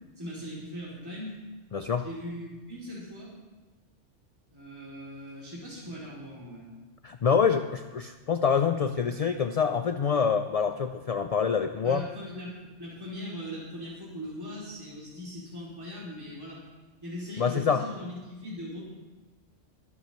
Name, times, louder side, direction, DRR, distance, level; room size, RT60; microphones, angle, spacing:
voice 1, 0.2-1.4 2.0-3.3 4.5-6.7 11.8-16.6 17.0-18.8, equal, 20° right, -7 dB, 2.7 m, -40 dB
voice 2, 1.7-2.0 7.0-12.1 17.4-17.8, left 6 dB, 70° left, 8 dB, 0.3 m, -26 dB
23.0 x 8.3 x 3.1 m, 1.2 s
omnidirectional pair, 1.2 m